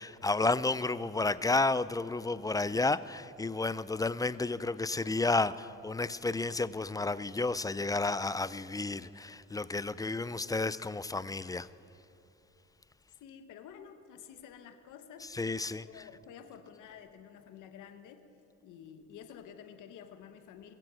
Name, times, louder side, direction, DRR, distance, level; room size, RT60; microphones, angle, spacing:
voice 1, 0.0-11.7 15.3-15.8, left 3 dB, 10° left, 0.3 m, -31 dB
voice 2, 13.2-15.3 15.7-18.2 18.6-20.7, left 8 dB, 85° left, 1.1 m, -50 dB
22.0 x 7.6 x 7.5 m
cardioid pair, 90°, 30 cm